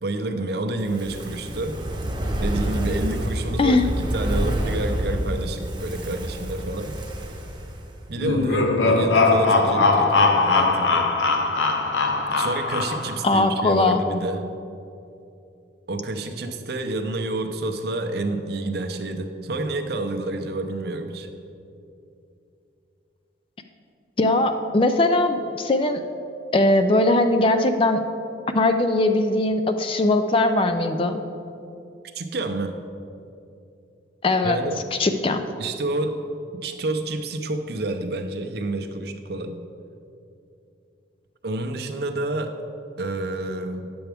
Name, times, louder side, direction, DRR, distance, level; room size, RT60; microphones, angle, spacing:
voice 1, 0.0-1.8 2.4-6.9 8.1-11.1 12.3-14.4 15.9-21.3 32.1-32.8 34.4-34.8 35.6-36.2 36.5-39.6 41.4-42.6 43.0-43.9, right 2 dB, 55° right, 6 dB, 0.6 m, -29 dB
Fire, 0.8-8.1 8.4-8.5, equal, 25° right, 0.8 m, -28 dB
sound 1, 8.2-13.3, left 3 dB, 85° left, 0.7 m, -20 dB
voice 2, 13.2-14.0 24.2-26.0 26.5-28.0 28.5-31.2 34.2-34.6 35.0-35.4, left 2 dB, 30° left, 8 dB, 0.3 m, -20 dB
10.0 x 7.0 x 3.4 m, 2.7 s
head